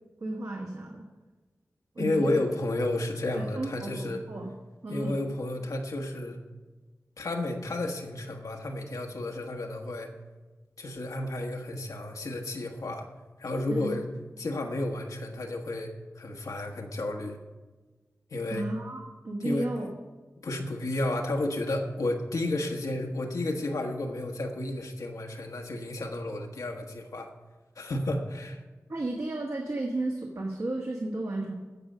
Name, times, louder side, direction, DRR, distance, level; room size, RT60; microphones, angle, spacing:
voice 1, 0.2-1.1 1.9-2.4 3.3-4.5 4.8-5.1 13.7-14.0 18.5-19.9 28.9-31.5, right 2 dB, 65° right, -1 dB, 1.3 m, -33 dB
voice 2, 2.0-4.2 4.9-6.4 7.2-10.1 10.8-13.1 13.4-14.1 14.4-17.4 18.3-18.7 19.4-19.9 20.4-27.3 27.8-28.6, left 2 dB, 90° left, 2 dB, 1.2 m, -32 dB
15.0 x 5.1 x 6.6 m, 1.3 s
wide cardioid pair, 55°, 6 cm